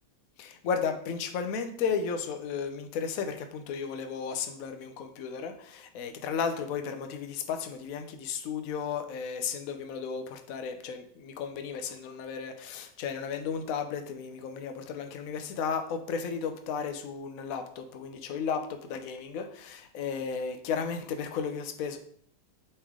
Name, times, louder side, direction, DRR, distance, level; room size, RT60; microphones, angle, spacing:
voice 1, 0.4-22.0, left 6 dB, 70° left, 7 dB, 1.1 m, -34 dB
8.5 x 3.4 x 3.7 m, 0.64 s
omnidirectional pair, 1.7 m